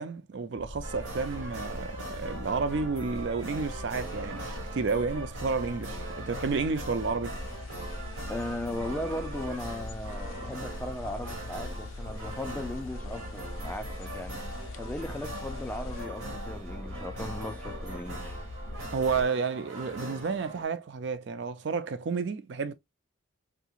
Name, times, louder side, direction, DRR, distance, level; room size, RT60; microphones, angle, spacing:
voice 1, 0.0-7.4 18.9-22.7, right 4 dB, 60° right, 0.4 m, -31 dB
sound 1, 0.6-19.2, left 1 dB, 25° left, 1.2 m, -41 dB
sound 2, 0.8-20.6, right 2 dB, 80° right, 1.3 m, -42 dB
sound 3, 7.3-16.1, left 4 dB, 85° left, 0.4 m, -47 dB
voice 2, 8.3-14.4 14.8-18.4, left 1 dB, 10° left, 0.4 m, -37 dB
3.6 x 2.9 x 2.3 m
head